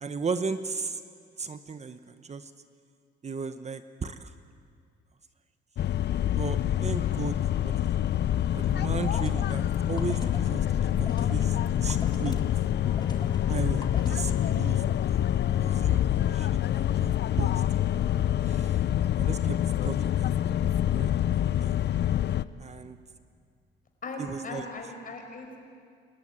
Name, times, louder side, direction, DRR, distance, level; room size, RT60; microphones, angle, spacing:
voice 1, 0.0-1.0 1.4-2.5 3.2-4.3 6.4-7.4 7.6-8.0 8.5-10.7 11.0-11.6 11.8-12.4 13.5-14.8 15.1-18.0 18.4-18.8 19.2-19.6 19.8-20.3 20.6-21.8 22.6-23.0 24.2-24.6, right 5 dB, 35° right, 10 dB, 1.0 m, -36 dB
sound 1, 5.8-22.5, left 11 dB, 60° left, 0.6 m, -26 dB
sound 2, 8.5-14.9, left 3 dB, 20° left, 1.8 m, -40 dB
voice 2, 24.0-25.6, left 2 dB, 45° left, 3 dB, 5.3 m, -39 dB
27.5 x 14.0 x 9.7 m, 2.2 s
cardioid pair, 90°, 20 cm